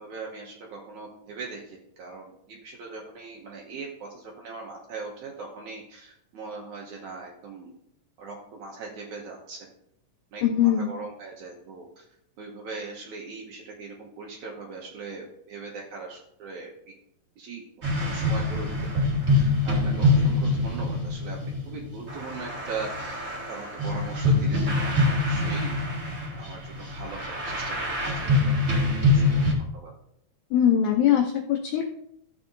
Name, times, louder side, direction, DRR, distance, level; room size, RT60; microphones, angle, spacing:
voice 1, 0.0-7.7 8.2-9.6 10.3-12.1 12.4-16.7 17.4-17.6 17.9-18.7 18.9-21.4 21.7-25.7 26.4-28.6 29.1-29.2 29.8-29.9, right 4 dB, 70° right, -1 dB, 2.3 m, -40 dB
voice 2, 10.4-10.9 30.5-32.0, left 10 dB, 75° left, 1 dB, 1.9 m, -22 dB
sound 1, 17.8-29.5, left 1 dB, 30° right, 1.7 m, -25 dB
13.5 x 7.3 x 2.6 m, 0.76 s
omnidirectional pair, 3.9 m